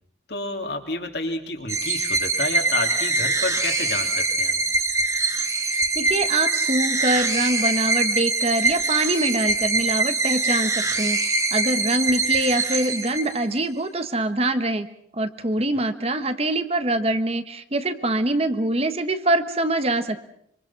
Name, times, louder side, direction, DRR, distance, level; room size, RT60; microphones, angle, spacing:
voice 1, 0.3-4.6, left 2 dB, 60° left, 3 dB, 3.2 m, -30 dB
sound 1, 1.7-13.6, right 3 dB, 20° right, 1.9 m, -23 dB
voice 2, 5.7-14.9 15.1-20.2, right 2 dB, 35° right, 10 dB, 1.2 m, -24 dB
26.0 x 25.0 x 5.9 m, 0.70 s
head